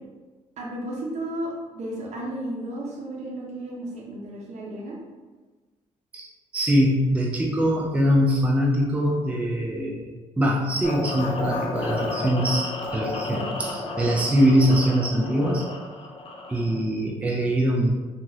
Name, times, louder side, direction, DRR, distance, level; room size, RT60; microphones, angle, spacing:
voice 1, 0.6-4.9, right 1 dB, 65° right, -3 dB, 0.8 m, -33 dB
voice 2, 6.5-15.6 16.5-18.0, equal, 10° right, -3 dB, 0.4 m, -23 dB
sound 1, 10.8-16.8, left 2 dB, 45° left, 0.5 m, -32 dB
2.9 x 2.5 x 2.7 m, 1.3 s
cardioid pair, 95°, 13 cm